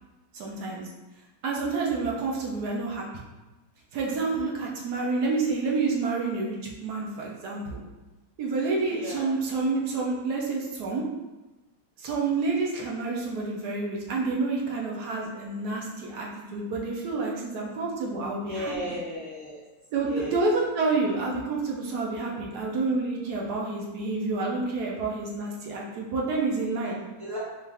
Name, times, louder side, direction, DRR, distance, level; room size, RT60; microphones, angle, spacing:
voice 1, 0.3-0.9 1.4-3.2 3.9-7.8 8.4-11.0 12.0-19.0 19.9-27.0, right 3 dB, 65° right, -3 dB, 1.0 m, -29 dB
voice 2, 8.9-9.3 18.4-19.6 20.0-20.3 26.8-27.4, left 1 dB, 35° right, -11 dB, 1.5 m, -35 dB
4.5 x 2.5 x 3.4 m, 1.1 s
omnidirectional pair, 2.3 m